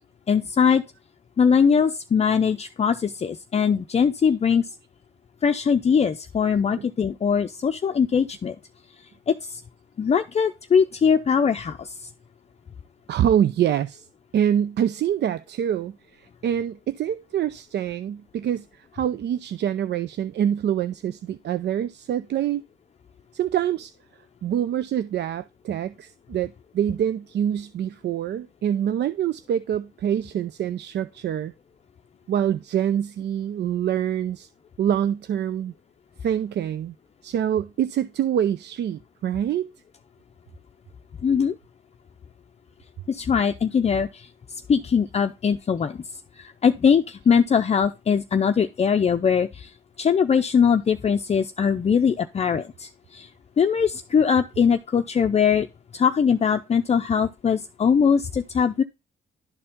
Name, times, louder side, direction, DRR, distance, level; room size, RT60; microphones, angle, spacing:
voice 1, 0.3-0.8 1.4-4.7 5.4-8.6 9.3-9.6 10.0-12.1 41.2-41.5 43.1-46.0 46.4-49.7 50.0-53.3 53.6-55.7 55.9-58.8, left 6 dB, 35° left, 0.5 m, -21 dB
voice 2, 13.1-14.1 14.3-22.6 23.3-23.9 24.4-31.5 32.3-34.5 34.8-35.7 36.2-36.9 37.2-39.7, right 10 dB, 60° right, 0.5 m, -25 dB
11.5 x 4.4 x 3.5 m
cardioid pair, 90°, 20 cm